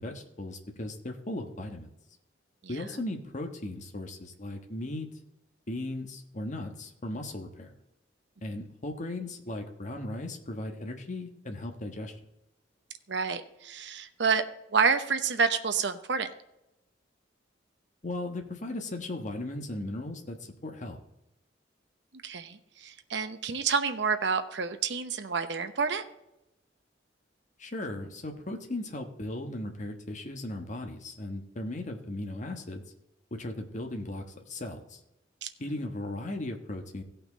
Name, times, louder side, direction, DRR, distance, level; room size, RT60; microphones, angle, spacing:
voice 1, 0.0-1.9 2.7-5.1 5.7-7.7 8.4-12.2 18.0-21.0 27.6-32.8 33.3-35.0 35.6-37.0, left 1 dB, 40° left, 4 dB, 1.3 m, -37 dB
voice 2, 13.1-14.4 14.7-16.3 22.2-26.0 35.4-35.5, right 5 dB, 70° right, 8 dB, 0.9 m, -28 dB
16.5 x 5.8 x 4.0 m, 0.89 s
head